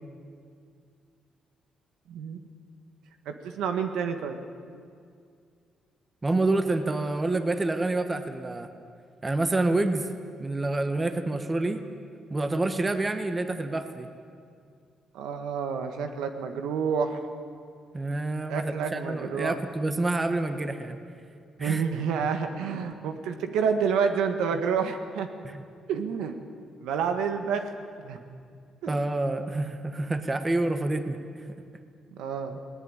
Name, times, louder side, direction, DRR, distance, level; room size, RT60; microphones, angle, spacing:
voice 1, 2.1-2.4 3.2-4.4 15.1-17.2 18.5-19.6 21.6-25.3 25.9-26.4 26.8-27.7 28.0-28.2 28.8-28.9 32.1-32.6, right 6 dB, 90° right, 7 dB, 1.6 m, -29 dB
voice 2, 6.2-8.7 9.2-10.1 10.4-11.8 12.3-14.1 17.9-21.0 21.6-21.8 25.4-25.6 28.9-31.5, right 2 dB, 25° right, 8 dB, 1.6 m, -28 dB
19.5 x 18.5 x 9.0 m, 2.3 s
cardioid pair, 90°, 0 cm